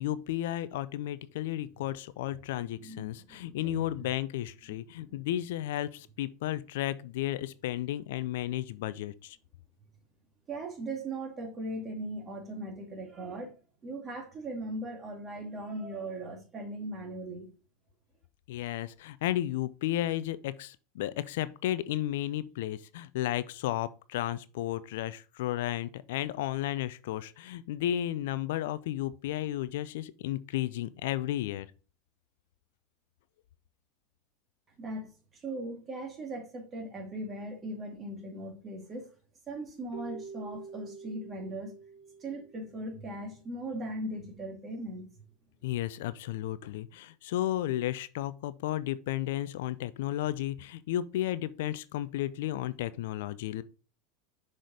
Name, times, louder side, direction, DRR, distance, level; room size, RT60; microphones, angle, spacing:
voice 1, 0.0-9.4 18.5-31.7 45.6-53.6, left 13 dB, 65° left, 0.4 m, -33 dB
voice 2, 2.7-4.0 5.0-5.1 10.5-17.5 34.8-39.1 39.5-41.7 42.2-45.1, right 1 dB, 30° right, 2.2 m, -39 dB
Keyboard (musical), 39.9-43.2, right 5 dB, 80° right, 1.5 m, -47 dB
6.2 x 5.0 x 3.9 m
hypercardioid pair, 90°, 0 cm